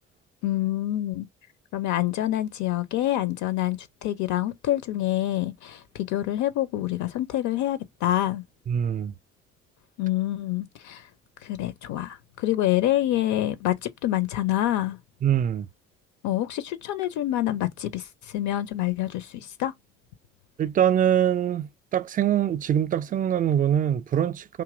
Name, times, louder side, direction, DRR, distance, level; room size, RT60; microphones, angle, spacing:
voice 1, 0.4-1.3 1.7-8.4 10.0-11.1 11.4-15.0 16.2-19.7, left 14 dB, 55° left, 0.6 m, -27 dB
voice 2, 8.7-9.1 15.2-15.7 20.6-24.6, right 10 dB, 25° right, 0.4 m, -23 dB
4.7 x 2.8 x 2.4 m
figure-of-eight pair, 50°, 35 cm